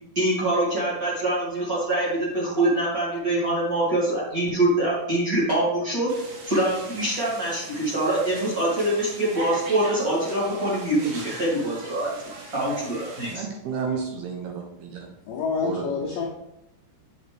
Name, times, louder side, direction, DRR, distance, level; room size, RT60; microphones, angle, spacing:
voice 1, 0.2-12.1 12.5-13.4, right 1 dB, 30° right, -7 dB, 1.8 m, -24 dB
sound 1, 6.1-13.3, right 2 dB, 55° right, 3.3 m, -41 dB
voice 2, 13.3-15.1 15.6-15.9, right 6 dB, 75° right, 1 dB, 2.6 m, -31 dB
voice 3, 15.3-16.3, left 5 dB, 85° left, -1 dB, 1.9 m, -27 dB
7.7 x 7.4 x 3.4 m, 0.86 s
omnidirectional pair, 5.2 m